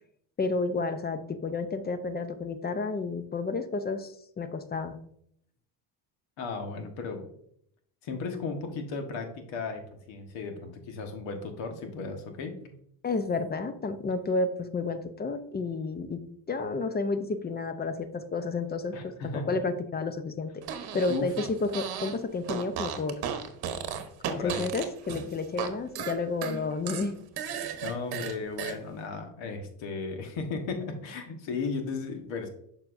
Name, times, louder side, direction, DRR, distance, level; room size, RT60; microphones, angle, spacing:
voice 1, 0.4-5.0 13.0-20.5 20.9-23.2 24.3-27.1, left 3 dB, 20° left, 11 dB, 0.6 m, -31 dB
voice 2, 6.4-7.3 8.0-12.7 18.9-19.6 21.1-21.3 24.4-24.7 27.8-32.5, left 4 dB, 65° left, 5 dB, 1.5 m, -35 dB
Fart, 20.6-22.2 22.4-25.7 26.0-28.8, right 8 dB, 50° right, 1.1 m, -35 dB
6.8 x 5.9 x 2.6 m, 0.69 s
supercardioid pair, 95°, 49 cm